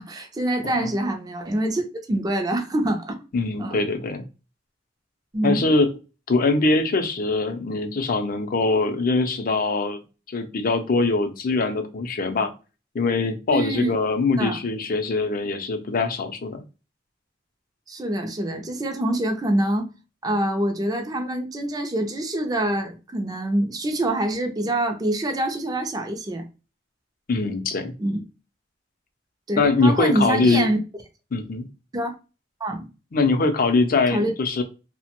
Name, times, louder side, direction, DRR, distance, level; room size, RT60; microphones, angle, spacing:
voice 1, 0.0-3.2 3.6-3.8 5.3-5.7 13.5-13.9 14.4-14.6 17.9-19.9 20.2-26.4 28.0-28.2 29.5-30.8 31.9-32.2 32.6-32.9 34.1-34.3, right 1 dB, 20° right, 0.4 m, -25 dB
voice 2, 3.3-4.2 5.4-5.9 6.3-10.0 10.3-12.5 12.9-16.6 27.3-27.9 29.6-30.7 31.3-31.7 33.1-34.6, left 3 dB, 50° left, 0.5 m, -22 dB
2.9 x 2.1 x 2.9 m
head